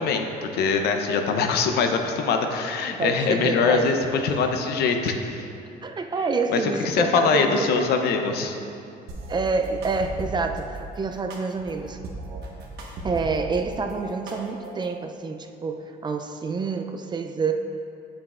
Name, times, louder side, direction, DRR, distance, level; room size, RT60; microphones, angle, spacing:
voice 1, 0.0-5.5 6.5-6.6 6.8-8.5, left 5 dB, 70° left, 5 dB, 0.7 m, -23 dB
voice 2, 3.0-4.0 5.8-7.7 9.3-12.0 13.0-17.5, right 4 dB, 25° right, 5 dB, 0.4 m, -27 dB
sound 1, 9.1-10.6 11.3-13.6 13.9-14.9, right 2 dB, 70° right, 1.2 m, -36 dB
8.6 x 7.4 x 2.4 m, 2.5 s
cardioid pair, 110°, 17 cm